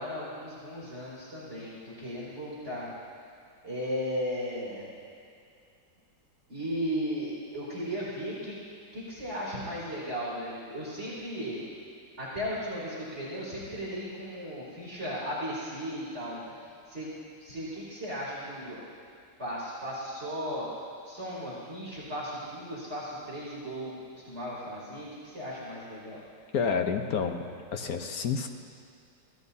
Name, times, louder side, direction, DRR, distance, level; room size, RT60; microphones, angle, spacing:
voice 1, 0.0-2.9 3.6-4.9 6.5-8.5 8.9-11.7 12.2-18.8 19.4-20.7 21.0-26.2, equal, 35° right, -8 dB, 3.4 m, -36 dB
voice 2, 26.5-27.4 27.7-28.5, left 6 dB, 60° left, 5 dB, 1.2 m, -29 dB
24.0 x 17.0 x 2.7 m, 2.4 s
omnidirectional pair, 1.9 m